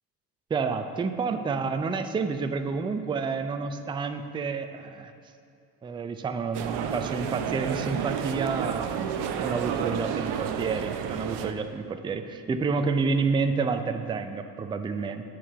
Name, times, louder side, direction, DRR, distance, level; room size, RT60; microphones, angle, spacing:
voice 1, 0.5-5.1 5.8-15.2, right 4 dB, 10° right, 8 dB, 0.4 m, -29 dB
sound 1, 6.5-11.5, right 8 dB, 55° right, 0.7 m, -31 dB
8.6 x 4.6 x 5.6 m, 2.5 s
hypercardioid pair, 55°, 48 cm